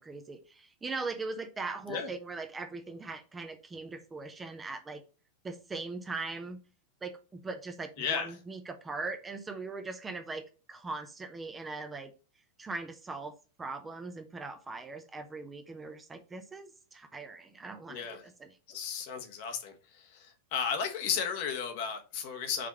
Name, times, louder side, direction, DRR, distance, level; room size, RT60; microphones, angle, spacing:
voice 1, 0.0-5.0 5.4-6.6 7.0-12.1 12.6-18.6, right 3 dB, 15° right, 0.8 m, -40 dB
voice 2, 8.0-8.3 17.9-18.2 18.7-19.7 20.5-22.7, left 7 dB, 50° left, 1.1 m, -33 dB
5.0 x 3.5 x 5.6 m
figure-of-eight pair, 90°, 0 cm